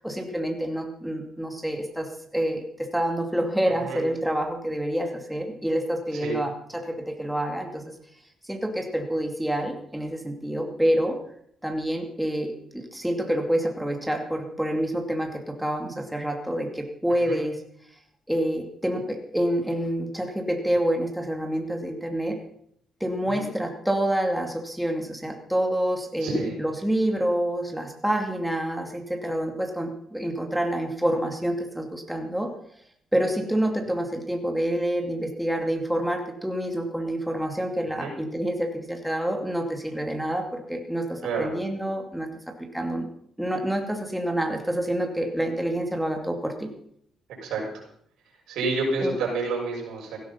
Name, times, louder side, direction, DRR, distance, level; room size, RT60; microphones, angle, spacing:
voice 1, 0.0-7.9 8.4-11.2 11.6-17.6 18.3-22.4 23.0-32.5 33.1-42.3 42.6-43.1 43.4-46.7 49.0-49.2, right 1 dB, 5° right, 3 dB, 2.5 m, -27 dB
voice 2, 26.2-26.6 38.0-38.1 41.2-41.5 47.4-47.8 48.5-50.2, right 3 dB, 85° right, -1 dB, 6.5 m, -29 dB
16.5 x 12.0 x 5.6 m, 0.67 s
cardioid pair, 90°, 0 cm